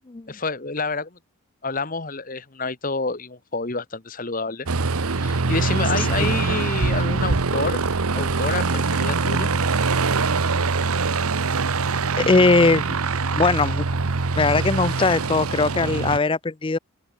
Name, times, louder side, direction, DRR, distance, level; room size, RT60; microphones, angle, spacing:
voice 1, 0.3-1.2 1.6-4.7 5.2-7.8 8.1-9.5, left 3 dB, 40° left, 1.3 m, -28 dB
Aircraft, 4.7-16.2, right 4 dB, 85° right, 1.1 m, -23 dB
voice 2, 6.0-6.3 12.2-12.8 13.3-13.9 14.4-16.8, left 3 dB, 25° left, 0.4 m, -20 dB
open air
head